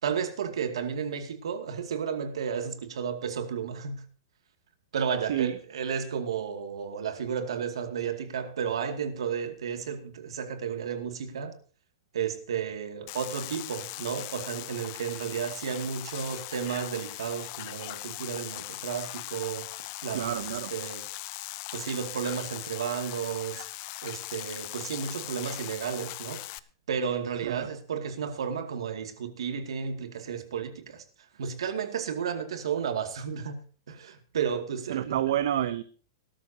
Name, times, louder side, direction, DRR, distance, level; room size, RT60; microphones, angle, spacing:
voice 1, 0.0-4.0 4.9-11.6 12.1-20.4 20.7-21.0 21.7-23.7 24.0-26.4 26.9-31.0 31.4-33.6 33.9-35.1, right 7 dB, 80° right, 2.3 m, -33 dB
sound 1, 13.1-26.6, left 19 dB, 30° left, 0.5 m, -39 dB
voice 2, 20.1-20.7 27.4-27.7 34.9-35.8, right 11 dB, 55° right, 0.7 m, -28 dB
19.5 x 12.5 x 2.8 m
supercardioid pair, 180°, 3 cm